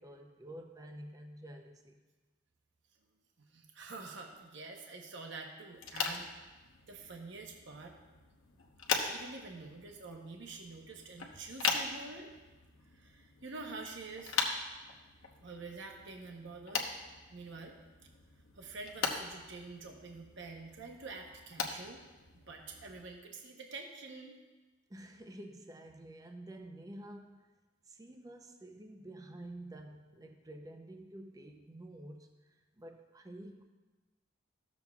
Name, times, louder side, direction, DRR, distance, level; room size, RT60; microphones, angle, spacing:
voice 1, 0.0-1.9 24.9-27.5 27.9-32.3 32.8-33.6, right 1 dB, 15° right, 3 dB, 0.6 m, -49 dB
voice 2, 3.5-6.3 6.9-7.9 8.9-12.3 12.9-14.4 15.4-16.8 17.3-17.8 18.6-22.0 22.5-24.4, right 3 dB, 55° right, 1 dB, 0.9 m, -47 dB
sound 1, 5.7-23.0, left 5 dB, 80° left, 1.0 m, -41 dB
14.5 x 7.0 x 2.4 m, 1.2 s
head